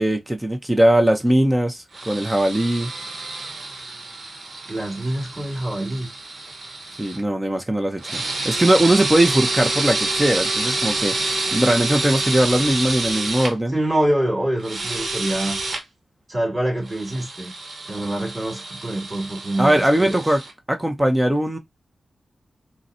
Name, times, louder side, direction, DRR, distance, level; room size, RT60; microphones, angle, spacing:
voice 1, 0.0-2.9 7.0-13.8 19.6-20.4 20.7-21.6, right 1 dB, 15° right, 0.6 m, -20 dB
sound 1, 1.9-7.2 8.0-13.5 14.6-15.8 16.9-20.5, right 2 dB, 70° right, 0.9 m, -28 dB
voice 2, 4.7-6.1 13.7-15.6 16.3-17.5 17.9-20.2, right 1 dB, 35° right, 2.6 m, -25 dB
3.9 x 2.1 x 2.6 m
cardioid pair, 65°, 0 cm